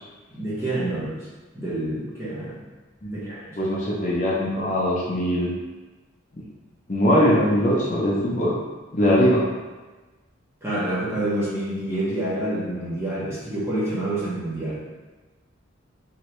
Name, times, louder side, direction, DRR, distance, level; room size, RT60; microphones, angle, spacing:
voice 1, 0.3-1.3 1.5-2.6 3.1-3.7 10.6-14.8, right 1 dB, 15° right, -9 dB, 0.7 m, -28 dB
voice 2, 3.6-5.5 6.9-8.6 8.9-9.5, equal, 35° left, -5 dB, 0.5 m, -21 dB
3.0 x 2.7 x 3.0 m, 1.2 s
head